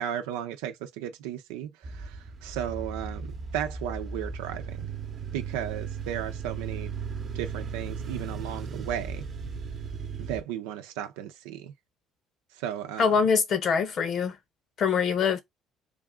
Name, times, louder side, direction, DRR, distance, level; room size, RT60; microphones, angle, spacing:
voice 1, 0.0-4.9 5.3-6.9 7.3-9.2 10.2-11.7 12.6-13.1, right 10 dB, 90° right, 0.6 m, -35 dB
sound 1, 1.8-10.4, right 5 dB, 45° right, 0.9 m, -36 dB
voice 2, 13.0-14.4 14.8-15.4, left 6 dB, 55° left, 1.0 m, -24 dB
3.5 x 2.5 x 3.6 m
supercardioid pair, 75°, 0 cm